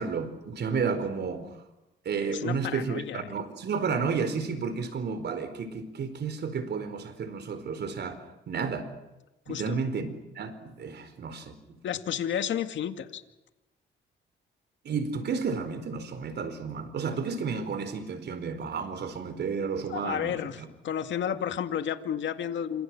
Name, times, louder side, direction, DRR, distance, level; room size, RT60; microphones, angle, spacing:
voice 1, 0.0-1.6 2.0-8.9 9.5-10.1 10.3-11.8 14.8-20.7, right 5 dB, 60° right, 11 dB, 4.5 m, -32 dB
voice 2, 2.3-3.3 9.5-9.8 11.8-13.2 19.9-22.8, left 9 dB, 70° left, 8 dB, 2.1 m, -32 dB
28.0 x 25.5 x 6.2 m, 1.0 s
cardioid pair, 90°, 20 cm